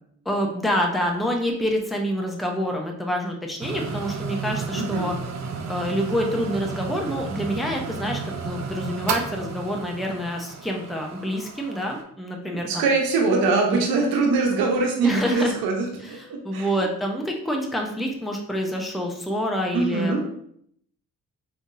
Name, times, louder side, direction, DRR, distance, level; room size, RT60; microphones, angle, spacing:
voice 1, 0.3-5.2 5.7-8.2 8.4-12.9 13.5-13.8 15.0-15.5 16.0-20.3, equal, ahead, 1 dB, 0.7 m, -27 dB
sound 1, 3.6-12.0, right 5 dB, 45° right, 0.6 m, -33 dB
voice 2, 4.7-5.1 12.5-16.7 19.7-20.2, right 3 dB, 75° right, 1 dB, 0.8 m, -23 dB
3.6 x 2.7 x 2.5 m, 0.68 s
hypercardioid pair, 45°, 36 cm